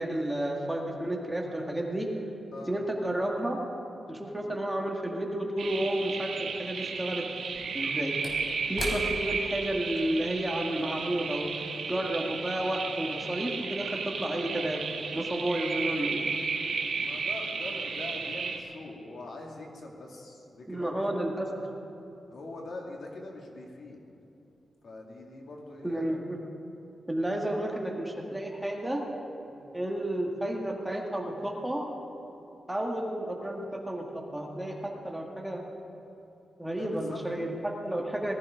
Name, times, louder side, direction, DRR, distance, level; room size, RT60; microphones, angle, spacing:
voice 1, 0.0-2.1 2.7-3.6 4.1-7.3 7.7-8.1 8.7-11.5 11.9-14.8 15.1-16.2 20.7-21.5 25.8-26.4 27.1-29.0 29.7-31.8 32.7-35.6 36.6-38.3, right 1 dB, 5° right, 0 dB, 1.9 m, -31 dB
voice 2, 2.5-2.9 17.0-21.2 22.3-24.0 24.8-26.2 29.5-29.7 36.8-37.2, left 2 dB, 65° left, 0 dB, 2.3 m, -43 dB
sound 1, 5.6-18.6, right 5 dB, 75° right, 1.6 m, -33 dB
Slam / Wood, 5.8-5.9 7.3-12.0 12.4-12.5, left 1 dB, 40° left, 3.7 m, -41 dB
19.5 x 14.0 x 5.1 m, 3.0 s
wide cardioid pair, 110°, 0 cm